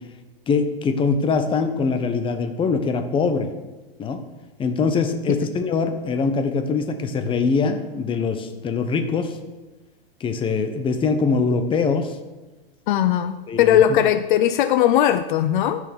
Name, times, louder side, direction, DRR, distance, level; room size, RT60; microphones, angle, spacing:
voice 1, 0.5-3.5 4.0-4.2 4.6-9.4 10.2-12.1 13.5-13.8, left 4 dB, 15° left, 7 dB, 1.1 m, -23 dB
voice 2, 12.9-15.8, left 10 dB, 55° left, 11 dB, 0.7 m, -19 dB
12.5 x 6.5 x 7.0 m, 1.2 s
hypercardioid pair, 140°, 30 cm